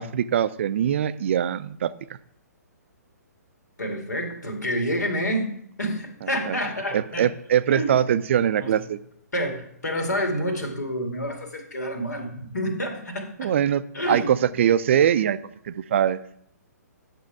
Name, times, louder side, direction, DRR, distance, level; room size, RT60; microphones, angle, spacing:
voice 1, 0.0-1.9 6.5-6.6 6.9-9.0 13.4-15.4 15.7-16.2, right 9 dB, 45° right, 14 dB, 0.4 m, -22 dB
voice 2, 3.8-5.5 5.8-7.3 7.7-8.0 8.6-8.8 9.3-13.5 13.9-14.4, equal, 75° left, 3 dB, 2.3 m, -28 dB
9.3 x 6.3 x 4.8 m, 0.68 s
figure-of-eight pair, 125°, 9 cm